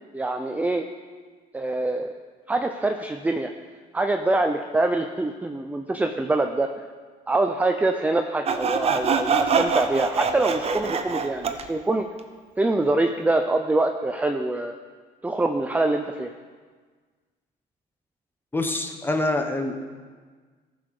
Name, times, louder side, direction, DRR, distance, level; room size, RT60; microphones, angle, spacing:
voice 1, 0.1-0.9 1.5-2.1 2.5-3.5 3.9-6.7 7.3-12.1 12.6-14.8 15.2-16.3, right 2 dB, 10° right, 5 dB, 0.5 m, -24 dB
Sawing, 8.5-11.7, right 5 dB, 35° right, 0.8 m, -24 dB
voice 2, 18.5-19.8, left 2 dB, 10° left, 5 dB, 1.0 m, -25 dB
14.0 x 6.2 x 4.9 m, 1.5 s
cardioid pair, 110°, 17 cm